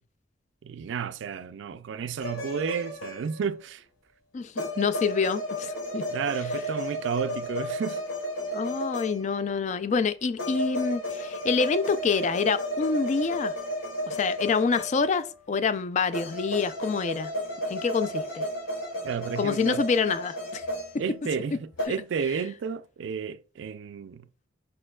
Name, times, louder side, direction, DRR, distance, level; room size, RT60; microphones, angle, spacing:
voice 1, 0.6-3.8 6.1-8.0 19.0-19.8 21.0-24.3, right 6 dB, 65° right, 0.3 m, -32 dB
sound 1, 2.2-3.6 4.6-9.5 10.4-15.3 16.1-21.4 21.8-21.9, equal, 85° left, 2.1 m, -33 dB
voice 2, 4.3-6.0 8.5-13.5 14.1-17.3 17.7-18.4 19.4-20.6, left 5 dB, 35° left, 0.3 m, -27 dB
5.4 x 4.3 x 2.3 m
head